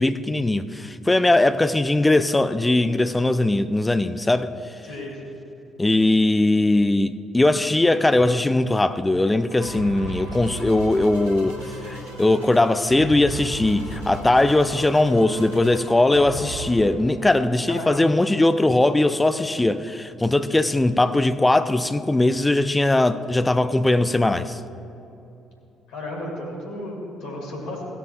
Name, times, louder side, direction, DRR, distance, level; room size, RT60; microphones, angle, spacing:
voice 1, 0.0-4.5 5.8-24.6, left 2 dB, 15° left, 0.5 m, -20 dB
voice 2, 4.8-5.3 17.7-18.1 20.5-20.8 25.9-27.9, left 1 dB, 65° left, 2.8 m, -34 dB
sound 1, 9.5-16.7, right 1 dB, 85° right, 1.8 m, -36 dB
sound 2, 16.5-18.6 19.1-19.2, left 2 dB, 85° left, 1.8 m, -49 dB
17.0 x 12.5 x 2.4 m
figure-of-eight pair, 45°, 0 cm